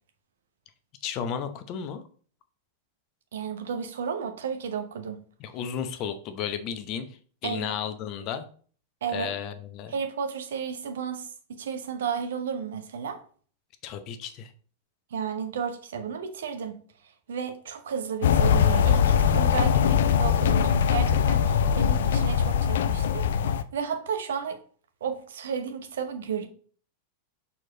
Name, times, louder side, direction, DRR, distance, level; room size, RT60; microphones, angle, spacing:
voice 1, 1.0-2.0 5.4-7.1 7.4-8.4 9.1-9.9 13.8-14.5 19.7-19.9, left 8 dB, 40° left, 0.8 m, -33 dB
voice 2, 3.3-5.2 7.4-7.7 9.0-9.3 9.9-13.2 15.1-16.8 17.3-23.4 23.7-24.6 25.0-26.5, right 7 dB, 60° right, 0.9 m, -33 dB
sound 1, 18.2-23.6, left 8 dB, 60° left, 0.4 m, -22 dB
6.3 x 4.3 x 3.8 m
figure-of-eight pair, 90°, 0 cm